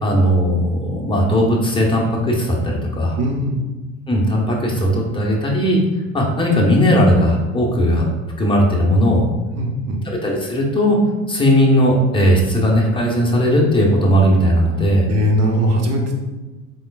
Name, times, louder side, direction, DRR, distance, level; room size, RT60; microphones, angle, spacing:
voice 1, 0.0-3.2 4.1-5.8 6.1-8.1 8.4-9.2 10.1-11.0 11.3-15.1, equal, 10° left, -2 dB, 0.9 m, -17 dB
voice 2, 3.2-3.6 9.5-10.0 15.1-16.1, equal, 35° right, 1 dB, 0.9 m, -19 dB
3.8 x 3.6 x 2.4 m, 1.2 s
hypercardioid pair, 70°, 42 cm